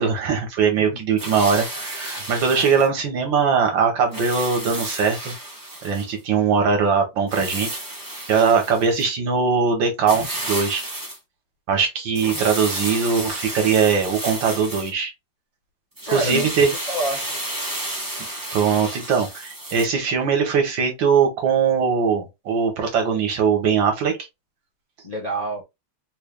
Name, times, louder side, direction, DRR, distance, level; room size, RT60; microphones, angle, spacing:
voice 1, 0.0-5.3 5.8-7.7 8.3-10.8 11.7-15.1 16.1-16.7 18.5-24.1, right 6 dB, 65° right, 1.8 m, -21 dB
sound 1, 1.2-2.9 4.1-6.1 7.3-9.1 10.1-11.2 12.1-14.9 16.0-19.9, right 1 dB, 15° right, 1.0 m, -31 dB
voice 2, 16.1-17.2 25.0-25.6, right 1 dB, 50° left, 0.4 m, -28 dB
4.3 x 3.3 x 2.3 m
omnidirectional pair, 2.3 m